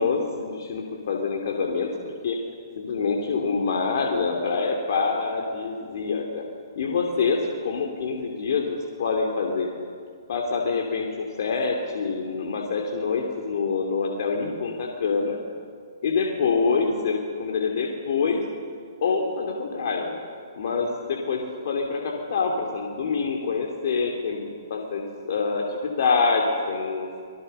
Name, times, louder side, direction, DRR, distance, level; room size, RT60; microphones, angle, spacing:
voice 1, 0.0-2.4 2.8-6.5 6.8-9.7 10.3-15.4 16.0-18.4 19.0-20.2 20.6-24.4 24.7-27.2, left 4 dB, 55° left, 1 dB, 2.8 m, -26 dB
26.0 x 19.5 x 6.7 m, 2.1 s
figure-of-eight pair, 130°, 2 cm